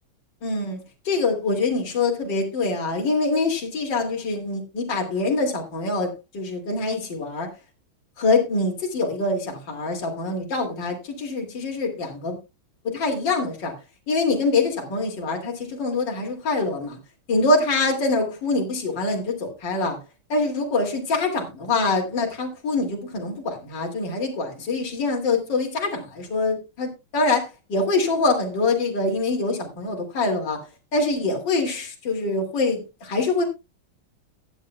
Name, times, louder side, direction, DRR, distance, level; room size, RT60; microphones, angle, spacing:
voice 1, 0.4-0.8 1.0-7.5 8.2-12.4 12.8-13.7 14.1-17.0 17.3-20.0 20.3-30.6 30.9-33.5, left 3 dB, 55° left, 3.1 m, -24 dB
21.0 x 8.1 x 2.2 m
omnidirectional pair, 2.3 m